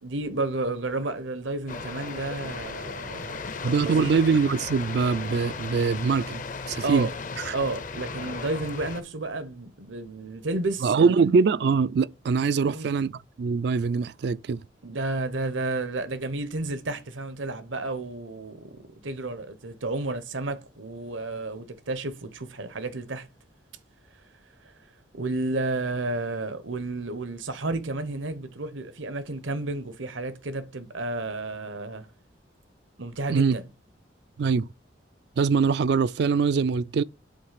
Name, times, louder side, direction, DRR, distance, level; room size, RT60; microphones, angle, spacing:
voice 1, 0.0-3.4 3.8-4.2 6.8-7.1 7.5-11.3 12.7-12.9 14.8-23.3 25.1-32.1 33.0-33.6, right 2 dB, 80° right, 1.0 m, -31 dB
sound 1, 1.7-9.0, left 4 dB, 45° left, 0.6 m, -36 dB
voice 2, 3.6-7.1 7.4-7.5 10.8-13.1 13.4-14.6 33.3-33.6 34.4-34.7 35.4-37.0, right 5 dB, 60° right, 0.3 m, -23 dB
7.7 x 3.2 x 5.7 m
head